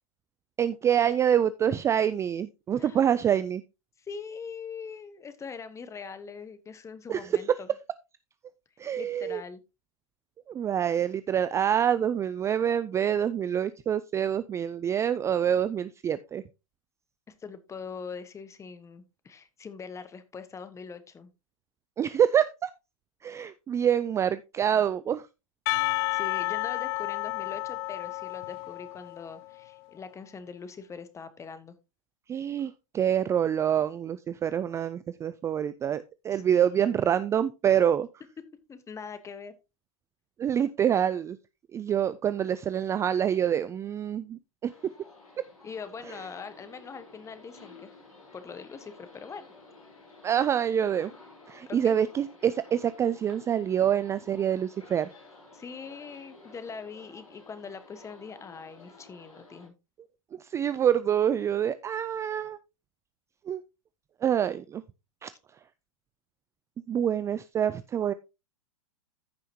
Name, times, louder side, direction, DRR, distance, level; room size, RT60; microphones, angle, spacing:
voice 1, 0.6-3.6 7.1-7.3 8.8-9.4 10.5-16.4 22.0-22.7 23.2-25.3 32.3-38.1 40.4-41.4 41.7-44.7 50.2-51.1 51.5-55.1 60.4-62.6 63.5-63.6 64.2-64.8 65.2-65.3 66.9-68.1, right 9 dB, 15° right, 15 dB, 0.4 m, -26 dB
voice 2, 2.8-3.1 4.0-7.7 9.0-9.6 17.3-21.3 26.1-31.7 36.3-36.9 38.7-39.5 45.6-48.0 48.3-49.4 51.7-51.9 55.5-59.7, left 5 dB, 15° left, 12 dB, 1.3 m, -42 dB
Percussion, 25.7-29.6, left 22 dB, 45° left, 0.4 m, -31 dB
sound 1, 44.6-59.7, left 3 dB, 90° left, 4.2 m, -53 dB
14.5 x 5.6 x 2.8 m, 0.26 s
hypercardioid pair, 110°, 17 cm